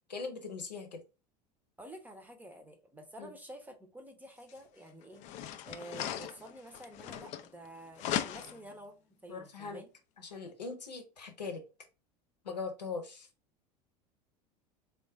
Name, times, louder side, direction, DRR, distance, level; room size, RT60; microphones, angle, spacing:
voice 1, 0.1-1.0 3.2-3.3 9.3-9.8 10.2-11.6 12.4-13.3, left 4 dB, 80° left, 0.8 m, -40 dB
voice 2, 1.8-5.2 5.7-8.9 9.2-9.9, right 1 dB, 10° right, 0.7 m, -49 dB
sound 1, 4.5-4.6 5.2-7.7 8.0-8.7, left 11 dB, 35° left, 0.4 m, -38 dB
3.6 x 2.5 x 3.4 m
figure-of-eight pair, 75°, 21 cm